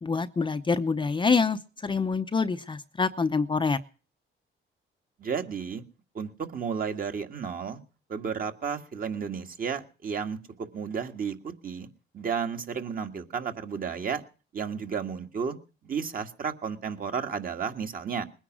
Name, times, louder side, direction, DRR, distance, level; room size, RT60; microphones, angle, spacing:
voice 1, 0.0-3.8, left 4 dB, 25° left, 8 dB, 0.7 m, -26 dB
voice 2, 5.2-5.8 6.2-7.8 8.1-11.9 12.1-14.2 14.5-15.6 15.8-18.2, right 6 dB, 45° right, 5 dB, 1.8 m, -32 dB
21.0 x 10.0 x 6.2 m, 0.37 s
cardioid pair, 145°, 21 cm